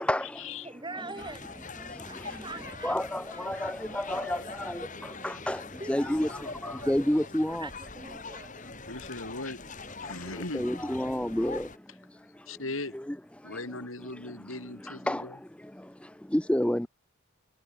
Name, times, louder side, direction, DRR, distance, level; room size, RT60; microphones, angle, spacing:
voice 1, 0.0-0.7 1.0-1.1 1.8-2.5 2.8-7.7 8.3-8.4 10.0-12.6 12.9-13.6 14.0-16.9, left 1 dB, 5° left, 0.5 m, -32 dB
voice 2, 0.6-1.7 2.0-3.0 3.3-4.5 4.8-6.1 6.8-6.9 7.5-8.8, right 3 dB, 20° right, 4.1 m, -45 dB
sound 1, 1.1-11.8, left 4 dB, 35° left, 6.6 m, -43 dB
voice 3, 8.9-9.6 10.0-10.7 12.5-12.9 13.4-15.4, left 2 dB, 70° left, 4.0 m, -38 dB
head